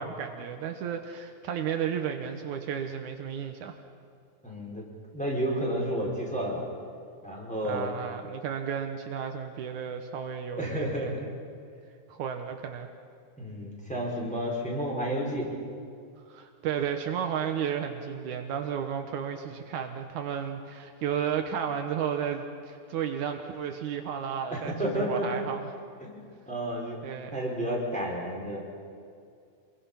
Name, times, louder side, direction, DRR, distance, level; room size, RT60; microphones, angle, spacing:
voice 1, 0.0-3.8 7.6-11.1 12.1-12.9 16.3-25.6 27.0-27.4, right 8 dB, 75° right, 5 dB, 2.4 m, -33 dB
voice 2, 4.4-4.8 5.1-6.6 7.2-7.9 10.6-11.3 13.4-15.5 24.5-25.5 26.0-27.0 27.3-28.6, equal, ahead, -4 dB, 4.9 m, -31 dB
26.5 x 22.5 x 5.8 m, 2.3 s
omnidirectional pair, 3.6 m